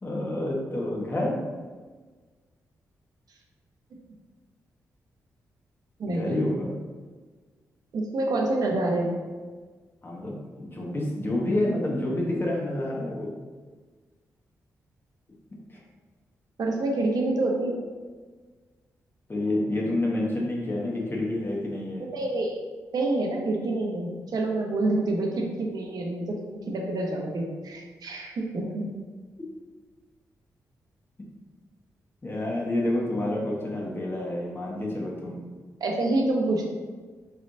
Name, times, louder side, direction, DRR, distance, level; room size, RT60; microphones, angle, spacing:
voice 1, 0.0-1.4 6.1-6.7 10.0-13.3 15.7-15.8 19.3-22.1 32.2-35.4, left 1 dB, 30° left, -2 dB, 1.3 m, -28 dB
voice 2, 6.0-6.4 7.9-9.2 16.6-17.8 22.0-22.6 22.9-28.8 35.8-36.7, right 2 dB, 65° right, 0 dB, 0.9 m, -27 dB
4.7 x 3.3 x 2.6 m, 1.4 s
supercardioid pair, 50°, 7 cm